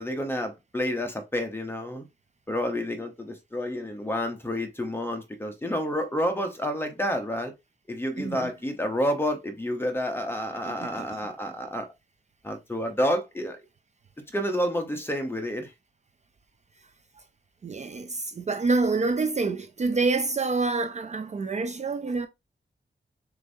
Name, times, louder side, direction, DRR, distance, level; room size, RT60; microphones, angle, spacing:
voice 1, 0.0-2.0 2.5-7.5 7.9-11.9 12.4-13.6 14.3-15.7, equal, 10° left, 0.8 m, -29 dB
voice 2, 8.2-8.5 10.8-10.9 17.6-22.3, right 3 dB, 40° right, 0.4 m, -27 dB
6.6 x 2.7 x 2.6 m
wide cardioid pair, 170°, 18 cm